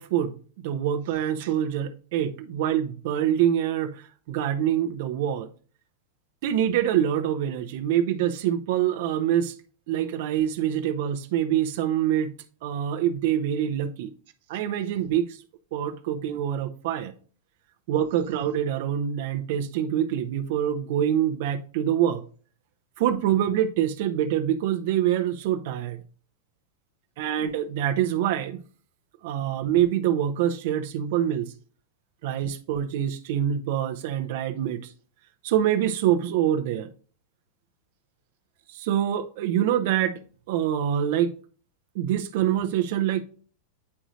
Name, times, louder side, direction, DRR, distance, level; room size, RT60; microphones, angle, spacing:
voice 1, 0.0-5.5 6.4-9.5 9.9-12.4 12.6-14.1 14.5-15.4 15.7-17.1 17.9-22.2 23.0-26.0 27.2-28.6 29.2-31.5 32.2-34.9 35.4-36.9 38.7-40.2 40.5-41.3 41.9-43.2, right 10 dB, 50° right, 0.6 m, -25 dB
9.6 x 4.9 x 2.6 m
figure-of-eight pair, 90°, 0 cm